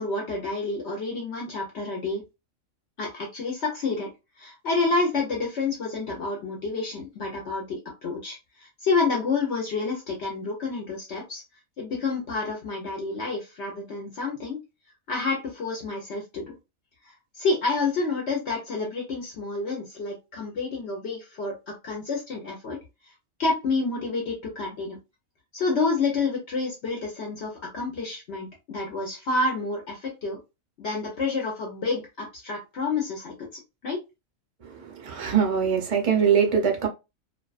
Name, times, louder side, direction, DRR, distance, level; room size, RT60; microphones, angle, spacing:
voice 1, 0.0-2.2 3.0-4.1 4.4-11.4 11.8-14.6 15.1-16.5 17.0-23.1 23.4-25.0 25.5-30.4 30.8-34.0, left 3 dB, 60° left, 0.9 m, -29 dB
voice 2, 34.6-36.9, right 7 dB, 45° right, 0.4 m, -23 dB
2.5 x 2.3 x 2.3 m
omnidirectional pair, 1.4 m